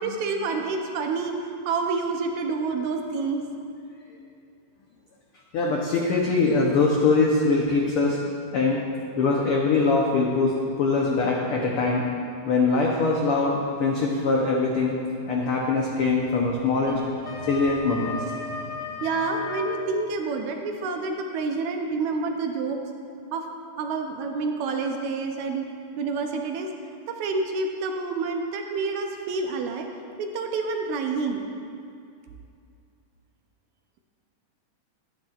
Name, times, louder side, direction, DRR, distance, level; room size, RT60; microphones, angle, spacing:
voice 1, 0.0-1.4 1.7-3.4 17.3-17.5 18.4-22.8 23.3-23.4 23.8-25.7 26.0-26.7 27.1-29.9 30.2-31.4, right 4 dB, 75° right, 3 dB, 1.9 m, -28 dB
voice 2, 5.5-8.2 8.5-8.8 9.2-12.0 12.4-15.0 15.3-17.0 17.5-18.2, left 3 dB, 90° left, -2 dB, 1.2 m, -22 dB
Wind instrument woodwind instrument, 16.8-19.9, left 3 dB, 60° left, 1.0 m, -35 dB
12.0 x 10.5 x 2.4 m, 2.4 s
omnidirectional pair, 3.6 m